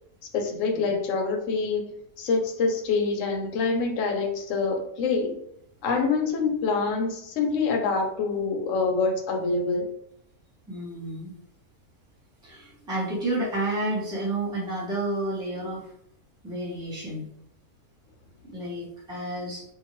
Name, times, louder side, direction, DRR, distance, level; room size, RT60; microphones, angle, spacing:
voice 1, 0.3-5.4 5.8-9.9, left 4 dB, 70° left, 3 dB, 0.9 m, -26 dB
voice 2, 10.7-11.3 12.4-15.9 16.4-17.3 18.4-19.6, right 1 dB, 5° right, -6 dB, 0.6 m, -30 dB
2.7 x 2.4 x 2.9 m, 0.72 s
omnidirectional pair, 1.5 m